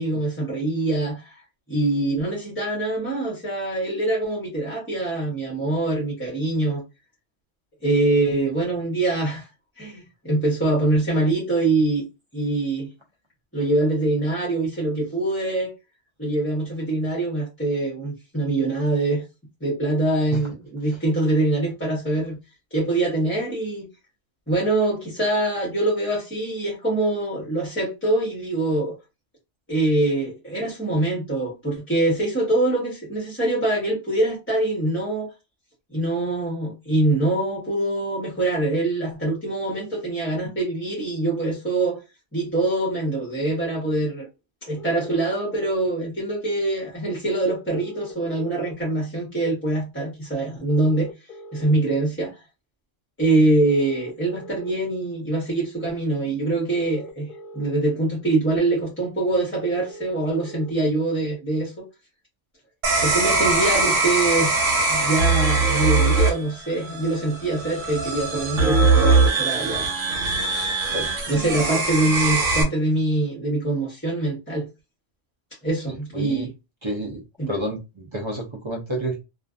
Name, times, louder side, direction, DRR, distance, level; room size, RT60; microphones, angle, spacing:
voice 1, 0.0-1.4 1.7-6.8 7.8-9.5 9.8-12.0 12.3-12.9 13.5-15.7 16.2-19.2 19.6-22.4 22.7-23.9 24.5-29.0 29.7-35.3 35.9-42.0 42.3-44.3 44.6-51.1 51.5-52.4 53.2-57.3 57.5-61.9 63.0-69.9 71.3-74.7 75.6-76.5 77.4-77.6, right 2 dB, 10° left, 0.7 m, -24 dB
sound 1, 44.8-45.7 47.7-48.7 50.7-51.7 53.7-54.7 56.7-57.7 59.7-60.7, right 1 dB, 35° left, 0.9 m, -41 dB
sound 2, 62.8-72.6, right 3 dB, 80° right, 1.1 m, -21 dB
voice 2, 75.9-76.5 76.8-77.2 77.5-79.2, right 1 dB, 50° right, 0.3 m, -30 dB
2.5 x 2.4 x 2.3 m
omnidirectional pair, 1.3 m